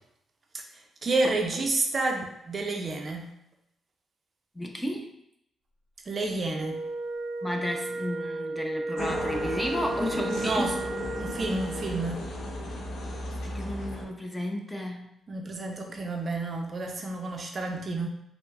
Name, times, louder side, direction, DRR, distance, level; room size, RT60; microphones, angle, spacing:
voice 1, 0.5-3.3 6.1-6.8 10.4-10.8 11.2-12.2 15.3-18.1, right 2 dB, 45° right, 3 dB, 0.4 m, -30 dB
voice 2, 4.5-5.1 7.4-10.7 13.4-15.1, left 1 dB, 10° left, 2 dB, 0.5 m, -33 dB
Wind instrument woodwind instrument, 6.5-12.1, right 3 dB, 90° right, 0.6 m, -34 dB
sound 1, 9.0-14.0, left 1 dB, 75° left, 0.8 m, -35 dB
5.7 x 2.0 x 2.3 m, 0.77 s
cardioid pair, 85°, 0 cm